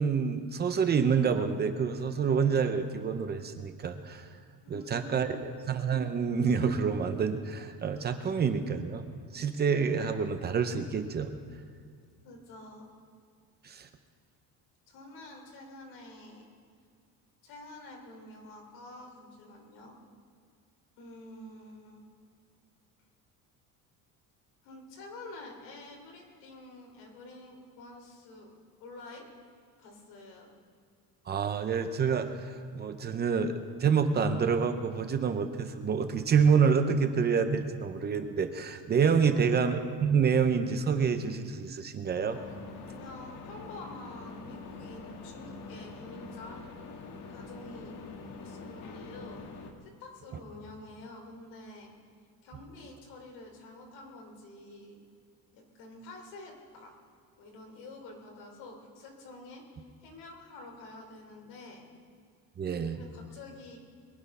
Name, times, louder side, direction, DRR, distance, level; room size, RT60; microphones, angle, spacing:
voice 1, 0.0-4.2 4.7-9.0 9.3-11.3 13.6-13.9 31.3-33.5 33.8-42.4 62.6-63.0, right 6 dB, 25° right, 8 dB, 0.7 m, -27 dB
voice 2, 4.6-5.5 12.2-12.9 14.9-16.5 17.4-20.0 21.0-22.1 24.6-28.5 28.8-29.3 29.8-30.5 39.2-39.6 42.8-46.6 47.3-47.9 48.4-49.4 49.8-51.9 52.4-55.0 55.5-56.9 57.4-61.8 63.0-63.8, left 2 dB, 85° left, 1 dB, 3.7 m, -48 dB
sound 1, 42.3-49.7, left 4 dB, 55° left, 1.6 m, -45 dB
22.5 x 10.5 x 5.6 m, 2.1 s
cardioid pair, 160°, 38 cm